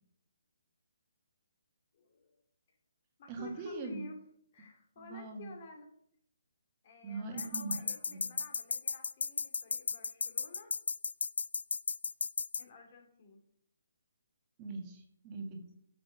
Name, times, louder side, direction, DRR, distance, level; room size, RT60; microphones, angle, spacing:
voice 1, 1.9-2.4 2.7-2.8 3.2-4.2 4.5-5.9 6.8-10.7 12.6-13.4, left 3 dB, 45° left, 4 dB, 2.4 m, -52 dB
voice 2, 3.3-4.0 5.0-5.5 7.0-8.3 14.6-15.7, right 3 dB, 25° right, 2 dB, 1.8 m, -42 dB
sound 1, 7.4-12.6, left 4 dB, 70° left, 0.4 m, -34 dB
9.2 x 6.3 x 4.8 m, 0.69 s
figure-of-eight pair, 145°, 0 cm